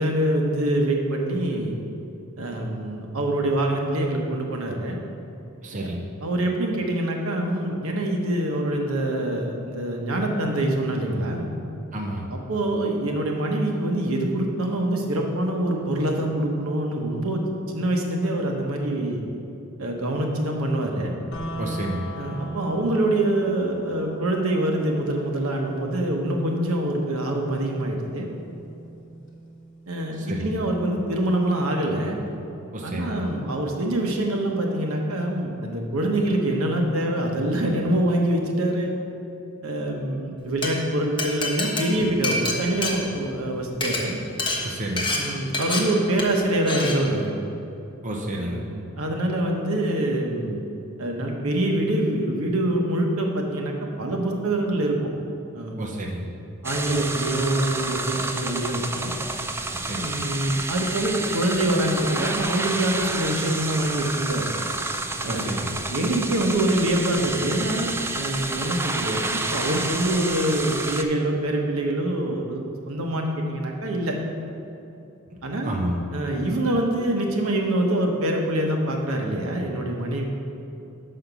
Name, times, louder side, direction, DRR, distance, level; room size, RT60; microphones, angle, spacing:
voice 1, 0.0-1.7 2.4-5.0 5.7-5.9 6.2-11.5 12.3-17.4 17.7-19.2 19.8-21.1 22.2-28.3 29.9-32.2 32.8-38.9 39.6-44.2 45.1-47.3 48.4-50.6 51.0-55.0 55.5-56.0 56.6-59.1 59.9-64.5 65.2-65.6 65.9-74.2 75.4-75.7 76.1-80.2, right 1 dB, 75° right, 1 dB, 1.0 m, -25 dB
voice 2, 5.6-6.0 11.9-12.3 21.6-22.1 30.1-30.6 32.7-33.2 44.6-45.1 48.0-48.6 55.8-56.3 59.7-60.2 65.2-65.8 75.6-76.0, right 1 dB, 35° right, -1 dB, 0.7 m, -30 dB
sound 1, 21.3-31.3, right 2 dB, 60° left, 1.2 m, -40 dB
Glass, 40.4-40.7 41.2-43.5 43.7-44.0 44.4-44.6 45.0-45.2 45.5-45.8 46.2-46.4 46.7-46.9, left 2 dB, 25° left, 1.1 m, -26 dB
sound 2, 56.6-71.0, right 2 dB, 10° right, 0.3 m, -29 dB
5.9 x 5.7 x 6.8 m, 2.7 s
head